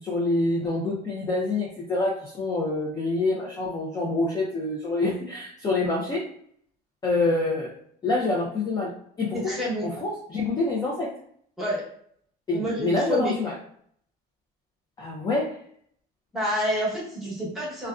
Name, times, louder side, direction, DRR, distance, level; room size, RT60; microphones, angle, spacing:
voice 1, 0.0-6.2 7.0-7.7 8.0-8.9 9.2-9.4 9.8-11.1 12.5-13.5 15.0-15.6, left 2 dB, 20° left, -4 dB, 0.4 m, -26 dB
voice 2, 9.4-9.9 11.6-11.8 12.5-13.3 16.3-17.9, equal, ahead, -7 dB, 1.0 m, -28 dB
2.4 x 2.1 x 2.3 m, 0.65 s
cardioid pair, 135°, 18 cm